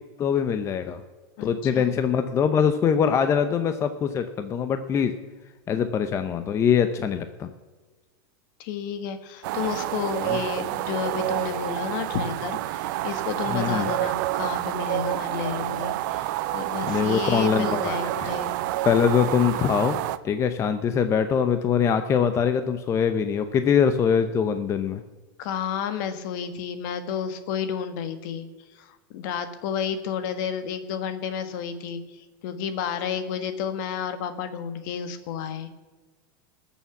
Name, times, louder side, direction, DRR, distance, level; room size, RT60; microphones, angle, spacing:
voice 1, 0.2-1.0 1.4-5.1 5.7-7.5 10.2-10.4 13.5-13.9 16.8-18.3 18.9-20.0 20.2-25.0, left 7 dB, 25° left, 9 dB, 0.7 m, -23 dB
voice 2, 1.4-1.8 5.7-5.9 8.6-18.6 25.4-28.5 28.7-35.7, left 7 dB, 60° left, 10 dB, 1.6 m, -31 dB
sound 1, 9.4-20.2, right 15 dB, 60° right, 0.8 m, -28 dB
20.0 x 7.1 x 7.1 m, 1.3 s
supercardioid pair, 145°, 12 cm